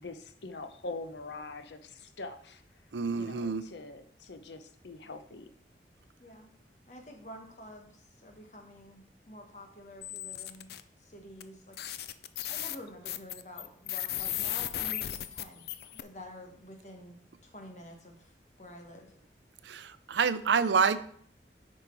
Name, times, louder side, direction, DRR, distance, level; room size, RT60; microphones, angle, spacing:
voice 1, 0.0-2.6 3.1-5.5, left 3 dB, 85° left, 9 dB, 0.8 m, -43 dB
voice 2, 2.9-3.6 19.7-21.0, right 5 dB, 90° right, 14 dB, 0.5 m, -27 dB
voice 3, 6.9-10.7 11.0-12.2 12.5-15.7 15.9-17.2 17.4-18.3 18.6-19.1, left 1 dB, 40° left, 2 dB, 1.5 m, -49 dB
sound 1, 10.0-10.8 11.4-11.5 11.7-16.0, left 12 dB, 65° left, 0.4 m, -36 dB
8.4 x 5.4 x 4.6 m, 0.62 s
head